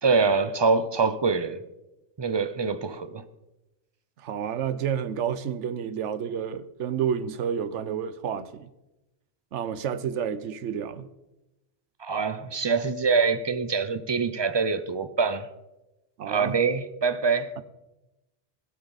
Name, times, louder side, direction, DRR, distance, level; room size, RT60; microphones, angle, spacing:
voice 1, 0.0-1.6 2.2-3.2 12.0-15.5 16.2-17.5, right 4 dB, 30° right, 0.5 m, -25 dB
voice 2, 4.2-8.7 9.5-11.1 16.2-16.6, right 8 dB, 85° right, 1.0 m, -30 dB
21.0 x 8.3 x 4.0 m
omnidirectional pair, 1.2 m